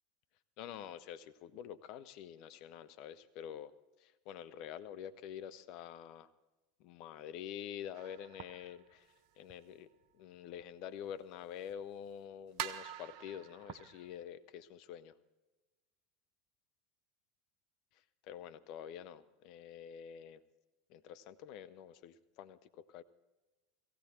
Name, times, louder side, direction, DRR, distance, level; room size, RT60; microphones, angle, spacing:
voice 1, 0.6-3.7 4.0-6.3 6.8-9.1 9.4-9.9 10.1-15.2 18.3-20.4 20.9-23.0, left 9 dB, 55° left, 12 dB, 0.8 m, -47 dB
sound 1, 7.9-9.6 10.0-10.1 10.6-10.7 11.7-11.8 12.5-14.2, right 10 dB, 55° right, 0.9 m, -46 dB
17.0 x 16.0 x 4.3 m, 1.1 s
figure-of-eight pair, 80°, 0 cm